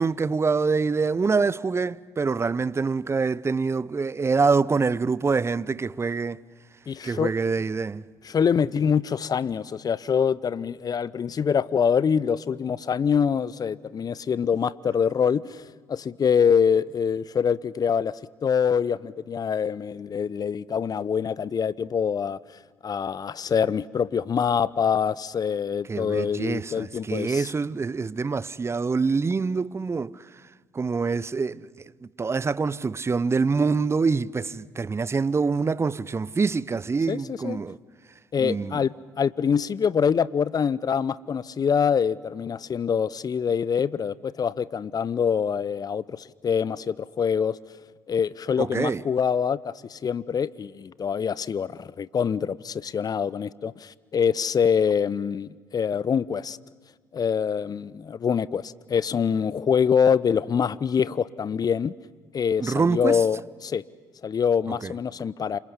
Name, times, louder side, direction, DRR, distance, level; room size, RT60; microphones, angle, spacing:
voice 1, 0.0-6.4 7.0-8.0 25.9-30.1 30.7-31.7 32.2-37.8 38.4-38.8 48.6-49.0 62.6-63.2 64.8-64.9, right 4 dB, 25° right, 0.7 m, -25 dB
voice 2, 6.9-7.3 8.2-15.6 15.9-22.4 22.8-27.5 37.1-37.6 38.3-47.6 48.1-56.6 57.1-61.9 62.3-63.8 64.2-65.6, left 7 dB, 40° left, 0.7 m, -25 dB
27.5 x 25.5 x 8.1 m
hypercardioid pair, 50°, 10 cm